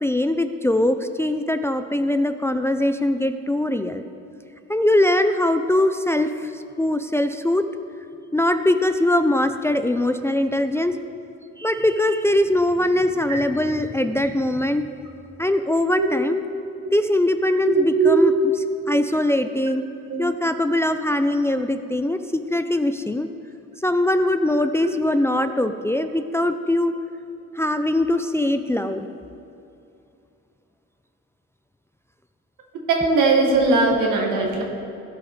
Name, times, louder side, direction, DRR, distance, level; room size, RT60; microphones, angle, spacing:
voice 1, 0.0-4.0 4.7-7.7 8.3-11.0 11.6-14.9 15.4-16.4 16.9-19.8 20.2-23.3 23.8-26.9 27.6-29.1, left 1 dB, 10° left, 8 dB, 0.4 m, -21 dB
voice 2, 17.6-18.3 20.1-20.3 32.9-34.6, right 3 dB, 85° right, 0 dB, 1.8 m, -19 dB
15.5 x 5.6 x 4.2 m, 2.7 s
cardioid pair, 90°, 30 cm